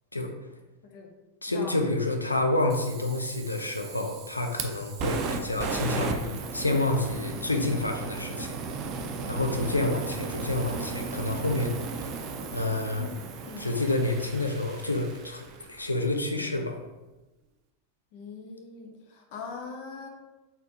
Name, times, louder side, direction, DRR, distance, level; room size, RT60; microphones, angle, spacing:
voice 1, 1.4-8.5 9.3-11.7 12.5-13.1 13.6-16.7, left 2 dB, 80° left, 3 dB, 0.5 m, -28 dB
Fire, 2.7-15.8, right 4 dB, 35° right, 0.4 m, -36 dB
voice 2, 12.7-13.1 13.4-13.7 18.1-20.1, left 4 dB, 45° left, 1 dB, 0.7 m, -41 dB
4.3 x 3.6 x 2.8 m, 1.1 s
figure-of-eight pair, 90°, 0 cm